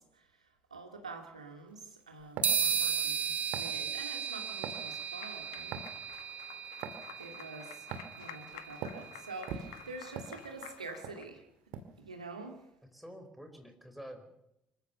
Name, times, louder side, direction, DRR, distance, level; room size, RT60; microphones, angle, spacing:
voice 1, 0.0-5.8 7.2-11.5 12.0-12.7, right 3 dB, 85° right, 4 dB, 2.2 m, -47 dB
sound 1, 2.4-10.1, right 7 dB, 40° right, 0.7 m, -36 dB
sound 2, 2.4-2.6 3.5-3.8 4.6-4.9 5.7-6.0 6.8-7.0 7.9-8.2 8.8-9.0 9.5-10.7 11.0-11.2 11.7-12.0, right 7 dB, 65° right, 2.0 m, -41 dB
Applause, 4.3-11.2, left 11 dB, 70° left, 1.3 m, -52 dB
voice 2, 12.9-14.4, equal, ahead, 5 dB, 4.4 m, -48 dB
26.0 x 15.0 x 6.9 m, 0.84 s
figure-of-eight pair, 50°, 3 cm